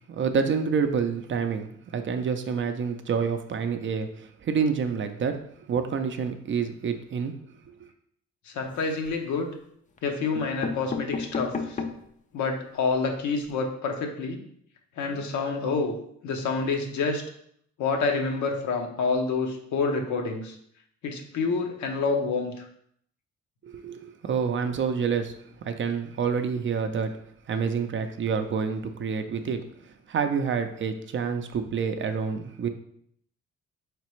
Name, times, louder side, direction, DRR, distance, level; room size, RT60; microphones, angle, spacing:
voice 1, 0.1-5.4 5.7-7.3 23.6-25.3 25.6-27.1 27.5-29.6 30.1-32.7, right 6 dB, 40° right, 7 dB, 0.4 m, -28 dB
voice 2, 8.5-9.5 10.0-11.8 12.3-14.4 15.0-16.0 16.2-17.2 17.8-20.6 21.0-22.7, left 4 dB, 75° left, 3 dB, 0.8 m, -28 dB
sound 1, 8.6-9.2 10.0-10.1 10.3-12.1 12.6-12.7 12.9-13.0 13.3-13.5, left 4 dB, 25° left, 0.4 m, -34 dB
4.0 x 3.3 x 3.1 m, 0.68 s
cardioid pair, 90°, 30 cm